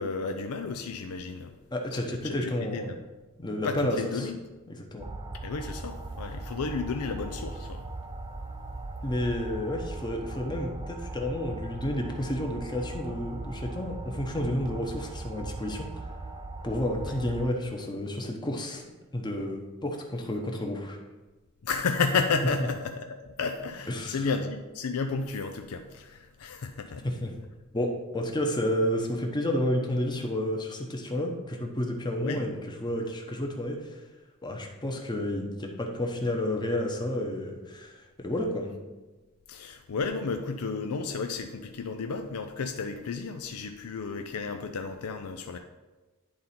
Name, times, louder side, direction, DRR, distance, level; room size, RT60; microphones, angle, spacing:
voice 1, 0.0-1.5 1.9-3.0 3.6-4.4 5.4-7.9 17.1-17.2 21.6-23.0 23.4-27.1 32.2-32.6 39.5-45.6, left 4 dB, 85° left, 5 dB, 0.5 m, -32 dB
voice 2, 1.7-2.9 3.4-4.3 4.7-5.1 9.0-15.9 16.6-18.8 19.1-21.0 23.9-24.3 27.0-27.3 27.7-32.5 32.8-34.0 34.4-38.7, left 1 dB, 20° left, 2 dB, 0.9 m, -31 dB
sound 1, 5.0-17.5, right 2 dB, 20° right, 0.4 m, -39 dB
10.0 x 3.9 x 4.3 m, 1.2 s
head